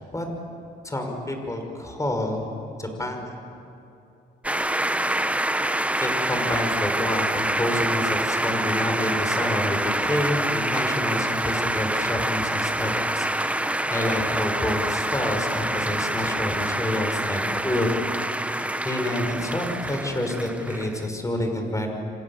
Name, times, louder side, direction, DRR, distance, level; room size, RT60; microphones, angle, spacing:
voice 1, 0.8-2.5 2.8-3.3 6.0-18.0 18.5-21.9, left 1 dB, 15° left, 4 dB, 5.8 m, -28 dB
sound 1, 4.4-21.1, right 1 dB, 5° right, 1.0 m, -26 dB
29.0 x 25.5 x 7.4 m, 2.8 s
cardioid pair, 90°, 20 cm